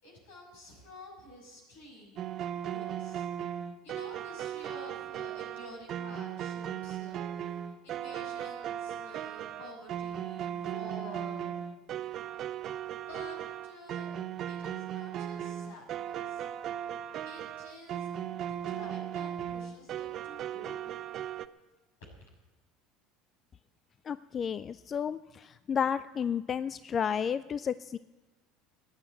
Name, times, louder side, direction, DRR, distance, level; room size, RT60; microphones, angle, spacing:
voice 1, 0.0-3.3 3.8-7.3 7.8-11.6 12.0-12.5 13.1-14.1 14.5-16.4 17.2-21.1, left 1 dB, 80° left, 0 dB, 6.3 m, -50 dB
sound 1, 2.2-21.5, right 10 dB, 50° right, 0.7 m, -37 dB
voice 2, 24.1-28.0, left 7 dB, 35° left, 16 dB, 0.4 m, -32 dB
15.0 x 9.7 x 8.9 m, 1.1 s
hypercardioid pair, 75°, 0 cm